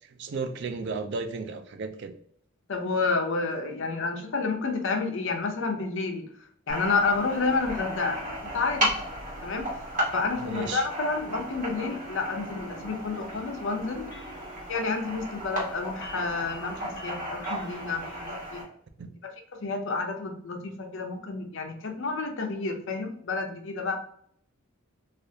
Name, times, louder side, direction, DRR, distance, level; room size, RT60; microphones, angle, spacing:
voice 1, 0.2-2.1 10.4-10.9 19.0-19.1, right 4 dB, 55° right, 8 dB, 0.4 m, -34 dB
voice 2, 2.7-6.2 6.7-8.2 8.5-8.9 9.4-9.7 10.1-14.1 14.7-18.6 19.5-24.0, left 4 dB, 60° left, 4 dB, 0.6 m, -30 dB
sound 1, 6.7-18.6, equal, 40° right, 1.2 m, -35 dB
sound 2, 13.1-18.2, right 2 dB, 15° left, 0.8 m, -48 dB
3.3 x 2.4 x 2.7 m, 0.63 s
head